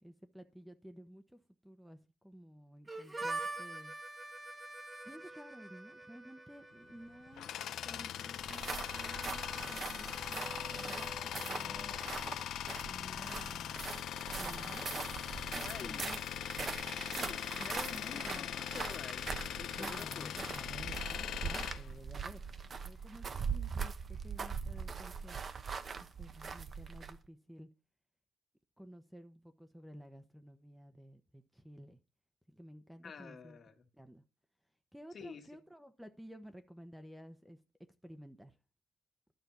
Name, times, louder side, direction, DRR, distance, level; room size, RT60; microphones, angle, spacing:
voice 1, 0.0-2.0 2.2-3.9 5.0-7.5 7.8-11.1 11.4-11.9 12.8-13.9 14.4-14.9 15.5-16.3 17.6-18.6 19.8-22.4 22.8-25.4 26.0-27.7 28.8-32.0 32.5-33.6 33.9-34.2 34.9-37.6 38.0-38.6, equal, 5° right, 1.0 m, -53 dB
Harmonica, 2.9-12.5, right 2 dB, 20° right, 1.4 m, -46 dB
Tools, 6.9-22.7, left 11 dB, 75° left, 0.6 m, -41 dB
sound 1, 8.4-27.3, right 5 dB, 45° right, 0.9 m, -42 dB
voice 2, 15.6-16.1 17.1-20.4 33.0-33.9 35.1-35.4, left 6 dB, 50° left, 1.9 m, -49 dB
11.5 x 4.4 x 6.9 m
cardioid pair, 90°, 0 cm